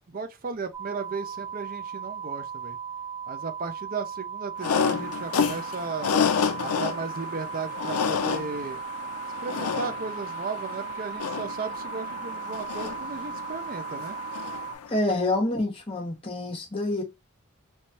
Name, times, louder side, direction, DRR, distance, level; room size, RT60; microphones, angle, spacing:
voice 1, 0.1-2.8 3.3-6.1 6.6-8.8 9.4-14.2, right 4 dB, 40° right, 0.5 m, -35 dB
sound 1, 0.7-14.7, right 7 dB, 10° left, 1.0 m, -37 dB
sound 2, 4.6-14.9, left 6 dB, 85° left, 0.5 m, -30 dB
voice 2, 14.9-17.0, left 2 dB, 25° left, 1.3 m, -27 dB
3.2 x 3.2 x 2.8 m
head